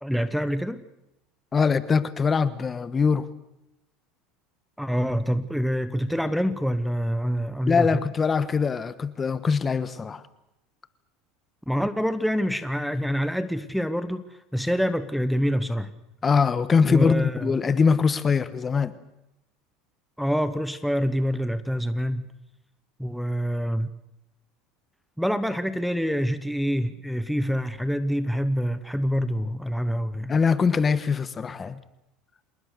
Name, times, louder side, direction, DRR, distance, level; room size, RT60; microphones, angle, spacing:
voice 1, 0.0-0.8 4.8-8.0 11.7-15.9 16.9-17.6 20.2-22.3 23.0-23.9 25.2-30.3, equal, ahead, 13 dB, 1.0 m, -26 dB
voice 2, 1.5-3.3 7.6-10.2 16.2-18.9 30.3-31.8, left 5 dB, 25° left, 14 dB, 1.2 m, -22 dB
27.0 x 19.5 x 6.7 m, 0.87 s
supercardioid pair, 115°, 0 cm